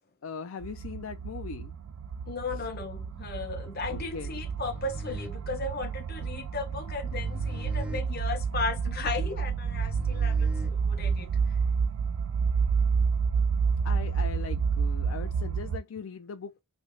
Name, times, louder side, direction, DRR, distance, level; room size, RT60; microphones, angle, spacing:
voice 1, 0.2-1.8 2.5-2.7 3.9-4.4 13.8-16.6, left 5 dB, 65° left, 0.4 m, -40 dB
sound 1, 0.6-15.8, right 5 dB, 70° right, 0.4 m, -29 dB
voice 2, 2.3-11.3, left 4 dB, 45° left, 0.8 m, -35 dB
sound 2, 4.3-11.3, left 2 dB, 5° right, 0.5 m, -43 dB
3.4 x 2.8 x 2.6 m
head